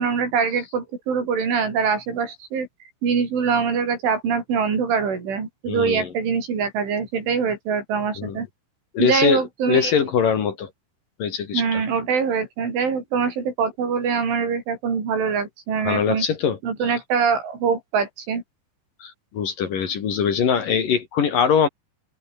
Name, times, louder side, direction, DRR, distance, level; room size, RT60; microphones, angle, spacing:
voice 1, 0.0-2.7 3.0-8.5 9.0-9.9 11.5-16.2 16.6-18.4, right 6 dB, 85° right, 8.4 m, -23 dB
voice 2, 5.7-6.1 8.2-8.4 8.9-10.7 11.2-11.8 15.8-16.6 19.0-21.7, left 7 dB, 50° left, 3.7 m, -22 dB
open air
omnidirectional pair, 5.4 m